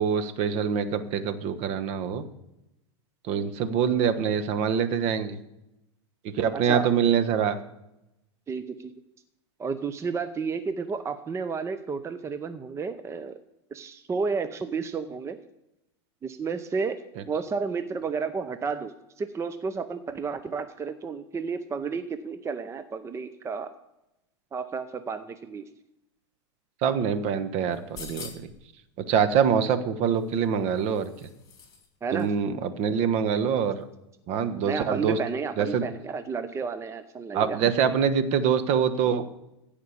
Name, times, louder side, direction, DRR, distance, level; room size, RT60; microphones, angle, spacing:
voice 1, 0.0-2.2 3.3-5.4 6.3-7.6 26.8-28.3 29.1-31.1 32.1-33.8 34.3-35.2 35.6-35.8 37.3-39.4, right 7 dB, 50° right, 10 dB, 1.3 m, -25 dB
voice 2, 8.5-8.9 9.6-13.4 13.7-15.4 16.2-17.0 17.3-23.7 24.5-25.6 32.0-32.3 34.6-37.6, right 5 dB, 20° right, 10 dB, 0.7 m, -32 dB
sound 1, 27.7-28.6 30.1-31.9 32.2-32.3, left 6 dB, 25° left, 3.8 m, -45 dB
15.0 x 5.1 x 7.1 m, 0.89 s
hypercardioid pair, 105°, 15 cm